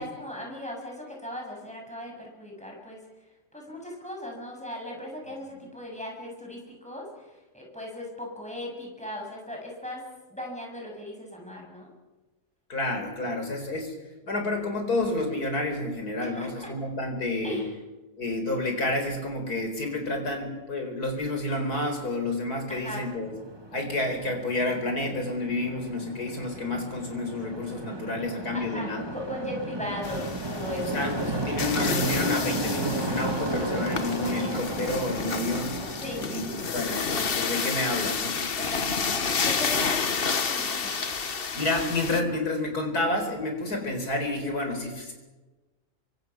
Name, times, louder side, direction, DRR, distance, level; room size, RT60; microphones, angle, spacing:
voice 1, 0.0-3.0 3.5-7.1 7.5-10.0 10.3-11.9 16.2-16.7 17.4-17.7 22.7-23.0 28.5-31.8 36.0-36.2 38.6-40.9, left 1 dB, 5° left, -1 dB, 7.0 m, -38 dB
voice 2, 12.7-13.9 14.2-17.6 18.2-23.4 23.7-29.0 30.8-35.8 36.2-36.5 36.7-38.4 41.5-45.1, left 2 dB, 80° left, 5 dB, 4.8 m, -29 dB
sound 1, 23.2-36.7, right 1 dB, 15° right, 2.0 m, -34 dB
sound 2, 30.0-42.2, left 5 dB, 40° left, 1.2 m, -30 dB
27.0 x 24.0 x 6.1 m, 1.2 s
omnidirectional pair, 1.6 m